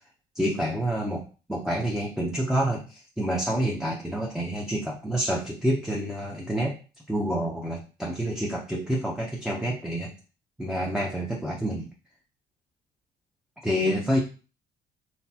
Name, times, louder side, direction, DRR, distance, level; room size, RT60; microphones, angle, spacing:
voice 1, 0.3-6.8 7.1-10.1 10.6-11.9 13.6-14.2, equal, 5° right, -3 dB, 0.7 m, -28 dB
4.1 x 3.2 x 2.9 m, 0.34 s
cardioid pair, 110°, 17 cm